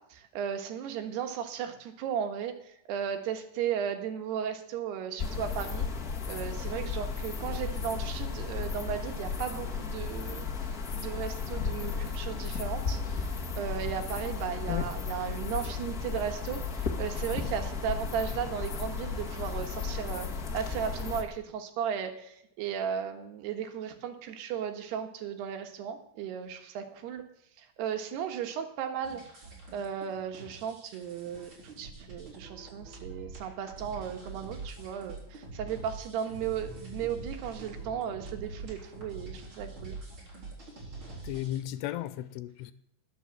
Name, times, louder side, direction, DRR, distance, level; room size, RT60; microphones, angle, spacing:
voice 1, 0.1-5.9 6.3-10.5 10.9-27.2 27.6-29.2 29.7-31.5 31.8-40.0, right 8 dB, 80° right, 6 dB, 3.4 m, -35 dB
sound 1, 5.2-21.2, left 5 dB, 55° left, 0.9 m, -34 dB
sound 2, 29.0-41.6, right 3 dB, 30° right, 4.4 m, -45 dB
voice 2, 41.2-42.7, left 14 dB, 90° left, 14 dB, 2.8 m, -35 dB
20.0 x 7.0 x 7.4 m, 0.78 s
omnidirectional pair, 4.7 m